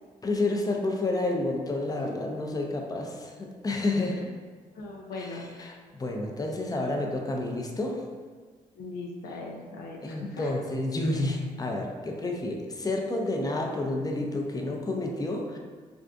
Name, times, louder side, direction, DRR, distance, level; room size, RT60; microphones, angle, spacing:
voice 1, 0.2-4.3 5.1-8.0 10.0-15.6, left 2 dB, 25° left, 1 dB, 0.5 m, -30 dB
voice 2, 4.7-5.7 8.8-10.5, left 3 dB, 85° left, 0 dB, 0.4 m, -40 dB
3.4 x 2.4 x 2.5 m, 1.5 s
supercardioid pair, 55°, 16 cm